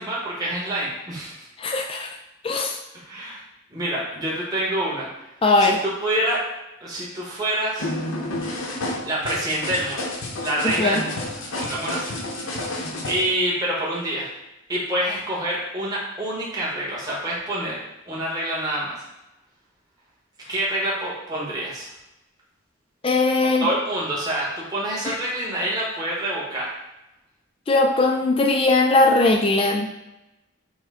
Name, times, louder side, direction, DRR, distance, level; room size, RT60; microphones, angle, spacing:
voice 1, 0.0-1.3 2.9-3.4 3.7-5.1 5.6-6.4 6.8-7.9 9.0-11.2 11.5-12.1 12.4-12.8 13.0-14.3 14.7-17.8 18.1-19.0 20.5-21.9 23.6-26.7, right 1 dB, 20° right, -6 dB, 1.2 m, -27 dB
voice 2, 1.6-2.1 2.4-2.7 5.4-5.8 10.6-11.0 23.0-23.7 27.7-29.9, left 2 dB, 25° left, 3 dB, 0.4 m, -19 dB
sound 1, 7.8-13.2, left 1 dB, 80° left, 0.9 m, -30 dB
6.2 x 2.2 x 3.6 m, 0.94 s
head